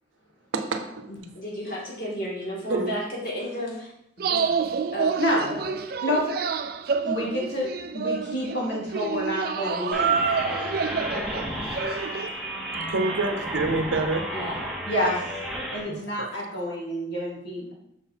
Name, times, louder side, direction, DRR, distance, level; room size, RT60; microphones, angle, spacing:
voice 1, 0.5-1.1 2.7-2.9 12.9-14.3 15.9-16.3, right 2 dB, 85° right, 6 dB, 0.7 m, -27 dB
voice 2, 1.3-3.9 4.2-4.4 4.7-5.2 5.5-5.8 9.6-10.3 14.3-14.6, equal, 50° left, -4 dB, 2.3 m, -33 dB
sound 1, 4.2-12.3, right 6 dB, 50° right, 0.3 m, -28 dB
voice 3, 5.2-5.6 6.0-6.2 7.0-10.7 14.9-15.2 15.7-17.7, equal, 65° left, -5 dB, 2.5 m, -28 dB
sound 2, 9.9-15.8, equal, ahead, 1.0 m, -32 dB
6.1 x 4.0 x 4.4 m, 0.77 s
head